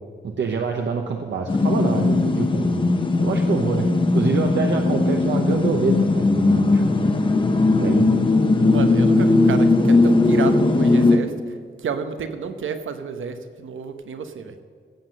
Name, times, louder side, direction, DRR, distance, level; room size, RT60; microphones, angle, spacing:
voice 1, 0.2-2.9 3.2-7.1 7.8-8.1, right 5 dB, 65° right, 3 dB, 0.9 m, -26 dB
sound 1, 1.5-11.2, left 2 dB, 25° left, 0.9 m, -18 dB
voice 2, 8.7-11.3 11.8-14.5, right 6 dB, 85° right, 8 dB, 1.0 m, -30 dB
15.5 x 7.7 x 6.6 m, 2.2 s
wide cardioid pair, 175°, 20 cm